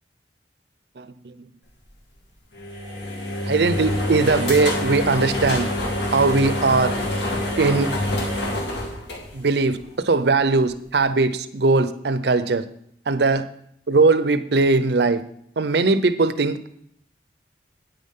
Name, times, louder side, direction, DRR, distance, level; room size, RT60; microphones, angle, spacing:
voice 1, 1.0-1.4 3.5-5.7 6.1-6.9 7.6-7.9 9.3-12.6 13.1-13.5 13.9-15.2 15.6-16.7, right 3 dB, 65° right, 13 dB, 0.6 m, -20 dB
sound 1, 2.5-9.8, left 1 dB, 70° left, 2.1 m, -26 dB
9.5 x 9.1 x 3.7 m, 0.70 s
head